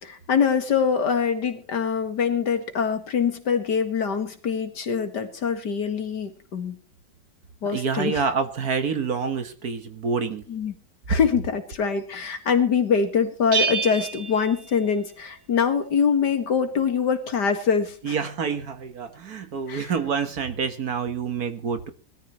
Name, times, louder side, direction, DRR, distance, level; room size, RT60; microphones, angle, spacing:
voice 1, 0.0-6.8 7.6-8.2 10.5-10.7 11.1-18.2 19.7-19.9, left 6 dB, 70° left, 7 dB, 2.4 m, -24 dB
voice 2, 7.7-10.4 18.0-21.9, right 5 dB, 60° right, 9 dB, 1.8 m, -27 dB
Bell, 13.5-15.3, right 5 dB, 75° right, 2.2 m, -28 dB
21.0 x 13.5 x 3.1 m, 0.36 s
omnidirectional pair, 1.9 m